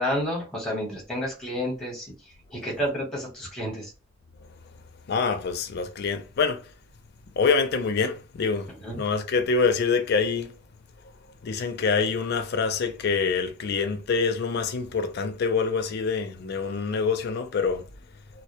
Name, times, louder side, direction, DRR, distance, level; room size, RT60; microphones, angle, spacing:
voice 1, 0.0-2.1 2.5-3.9 8.8-9.0, equal, 5° left, 0.9 m, -30 dB
voice 2, 5.1-6.7 7.4-10.5 11.4-17.9, left 5 dB, 55° left, 0.4 m, -26 dB
2.1 x 2.1 x 2.8 m
head